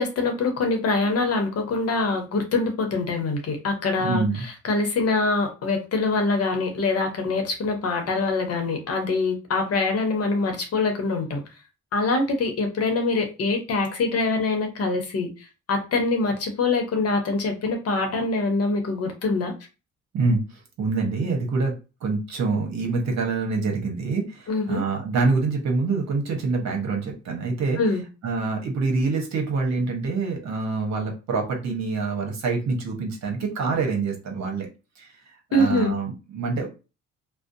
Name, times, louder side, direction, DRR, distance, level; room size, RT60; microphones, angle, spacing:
voice 1, 0.0-4.2 4.6-11.4 11.9-15.3 15.7-19.5 24.5-24.8 27.8-28.0 35.5-35.9, left 3 dB, 55° left, 4 dB, 0.8 m, -24 dB
voice 2, 4.0-4.4 20.1-20.4 20.8-27.8 28.2-34.7 35.0-35.1 35.5-36.7, right 4 dB, 60° right, 2 dB, 1.0 m, -26 dB
2.6 x 2.1 x 2.5 m, 0.30 s
cardioid pair, 90°, 30 cm